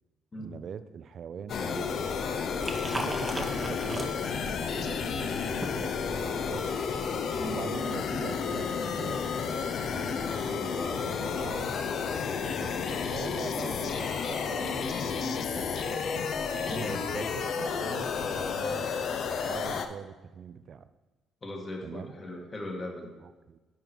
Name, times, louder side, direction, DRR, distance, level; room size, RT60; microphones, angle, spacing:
voice 1, 0.4-2.0 2.9-4.2 4.8-6.7 7.4-9.2 9.9-11.7 12.3-16.0 16.6-18.9 19.4-20.9 21.8-22.2 23.2-23.6, right 7 dB, 55° right, 12 dB, 0.4 m, -42 dB
sound 1, 1.5-19.9, left 6 dB, 60° left, 0.6 m, -31 dB
Liquid, 1.5-7.1, right 1 dB, 10° right, 0.8 m, -40 dB
voice 2, 2.9-3.3 7.3-7.6 16.7-17.0 21.4-23.1, left 1 dB, 30° left, 1 dB, 1.6 m, -39 dB
10.0 x 3.9 x 4.5 m, 1.2 s
cardioid pair, 95°, 0 cm